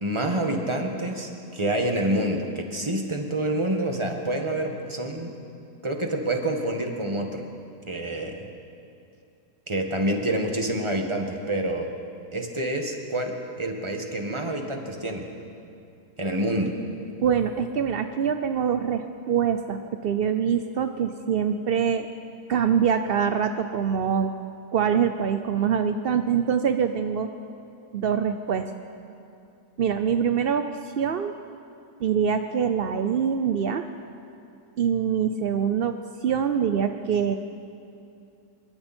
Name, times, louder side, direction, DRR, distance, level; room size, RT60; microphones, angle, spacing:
voice 1, 0.0-5.4 5.8-7.5 7.9-8.5 9.7-11.9 12.3-13.3 13.6-15.3 16.2-16.7, right 1 dB, 15° right, 2 dB, 1.8 m, -27 dB
voice 2, 17.2-22.1 22.5-24.3 24.7-27.3 27.9-28.7 29.8-31.4 32.0-33.9 34.8-37.4, right 7 dB, 60° right, 8 dB, 0.6 m, -24 dB
26.0 x 22.5 x 4.5 m, 2.6 s
omnidirectional pair, 1.8 m